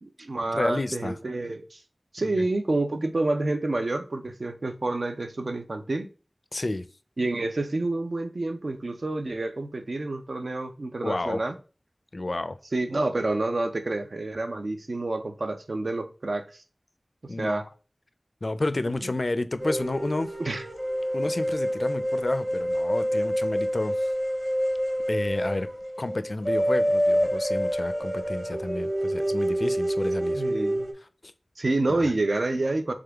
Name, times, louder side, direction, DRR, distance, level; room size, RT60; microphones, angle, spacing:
voice 1, 0.0-1.8 2.1-6.1 7.2-11.6 12.7-16.4 17.4-17.6 20.4-20.6 30.3-30.9 31.6-32.9, right 2 dB, 75° right, 0.5 m, -28 dB
voice 2, 0.5-1.2 2.2-2.5 6.5-6.9 11.0-11.4 12.1-12.6 17.3-17.7 18.4-20.3 21.1-24.1 25.1-25.7 26.0-30.4 31.9-32.0, left 2 dB, 60° left, 0.4 m, -30 dB
sound 1, 19.6-30.9, equal, 25° right, 0.9 m, -27 dB
3.6 x 3.5 x 3.4 m
wide cardioid pair, 55°, 0 cm